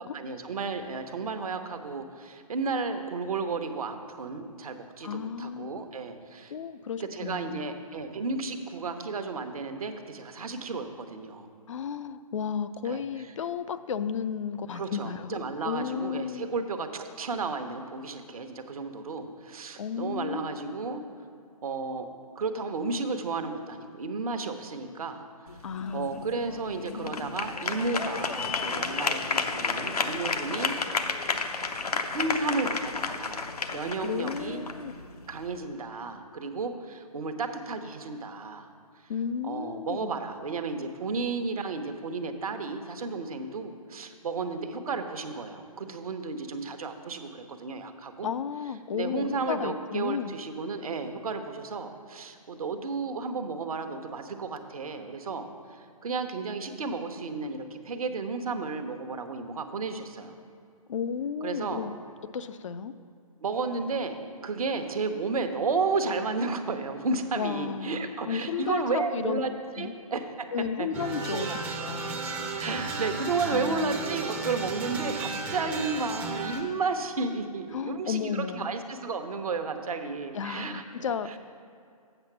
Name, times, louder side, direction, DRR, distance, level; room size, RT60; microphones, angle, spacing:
voice 1, 0.0-6.5 7.0-11.5 12.8-13.0 14.7-21.0 21.6-22.1 22.4-25.2 25.9-30.8 32.0-34.7 35.3-38.7 39.4-48.3 48.9-60.3 61.4-61.9 63.4-70.5 70.8-70.9 71.3-71.8 72.6-80.8 81.3-81.4, right 4 dB, 70° right, 7 dB, 0.9 m, -33 dB
voice 2, 5.0-5.8 6.5-7.6 11.7-16.5 19.8-20.8 25.6-26.5 34.0-34.9 39.1-40.1 48.2-50.4 60.9-61.9 62.3-62.9 67.4-69.5 69.8-69.9 70.5-71.5 71.8-72.2 73.5-74.0 77.7-78.7 80.3-81.3, left 7 dB, 55° left, 12 dB, 0.4 m, -33 dB
sound 1, 25.5-35.6, left 4 dB, 85° left, 0.8 m, -32 dB
sound 2, 70.9-76.6, right 3 dB, 10° right, 0.5 m, -34 dB
7.9 x 5.9 x 5.9 m, 2.4 s
hypercardioid pair, 145°, 19 cm